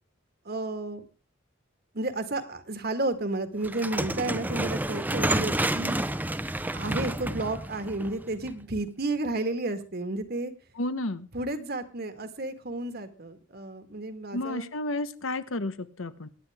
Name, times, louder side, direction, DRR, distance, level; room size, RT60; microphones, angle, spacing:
voice 1, 0.5-1.0 1.9-6.0 6.7-10.5 11.3-14.7, right 2 dB, 50° right, 9 dB, 1.7 m, -32 dB
sound 1, 3.6-8.8, right 1 dB, 10° right, 0.7 m, -30 dB
voice 2, 10.8-11.3 14.3-16.3, left 2 dB, 90° left, 12 dB, 1.2 m, -32 dB
23.5 x 10.0 x 3.6 m, 0.33 s
head